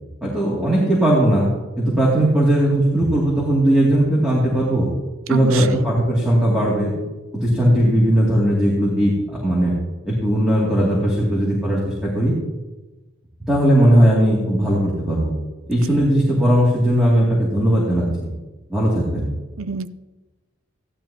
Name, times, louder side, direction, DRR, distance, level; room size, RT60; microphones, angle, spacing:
voice 1, 0.2-1.5 1.8-4.9 5.3-6.9 7.3-9.7 10.1-12.3 13.5-15.3 15.7-18.1 18.7-19.3, right 1 dB, 5° right, -7 dB, 2.5 m, -18 dB
voice 2, 5.3-5.8 19.6-19.9, right 6 dB, 85° right, 13 dB, 0.5 m, -27 dB
15.0 x 11.5 x 2.9 m, 1.1 s
head